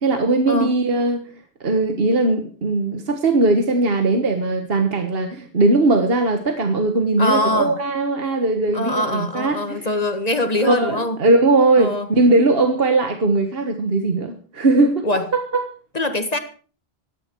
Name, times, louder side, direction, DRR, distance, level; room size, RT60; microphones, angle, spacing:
voice 1, 0.0-1.2 1.6-9.9 10.6-15.1 15.3-15.6, right 2 dB, 65° right, 6 dB, 1.7 m, -19 dB
voice 2, 7.2-7.8 8.7-11.2 11.8-12.1 15.0-15.3 15.9-16.4, left 1 dB, 40° left, 9 dB, 1.7 m, -23 dB
17.0 x 13.5 x 4.6 m, 0.40 s
omnidirectional pair, 1.0 m